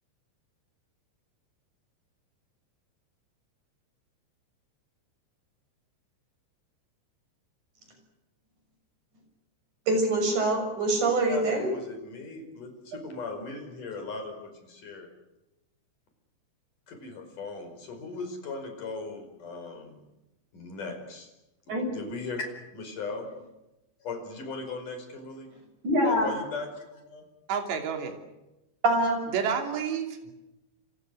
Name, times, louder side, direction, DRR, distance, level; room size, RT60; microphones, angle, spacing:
voice 1, 9.9-11.7 21.7-21.9 25.8-26.3 28.8-29.3, right 1 dB, 40° right, 5 dB, 7.8 m, -24 dB
voice 2, 11.3-15.1 16.9-20.0 20.5-21.3 21.7-23.3 24.0-25.5 26.0-27.2 30.2-30.3, left 3 dB, 45° left, 6 dB, 6.4 m, -38 dB
voice 3, 27.5-28.2 29.3-30.3, right 7 dB, 70° right, 4 dB, 5.1 m, -30 dB
29.0 x 26.0 x 6.6 m, 0.95 s
omnidirectional pair, 5.3 m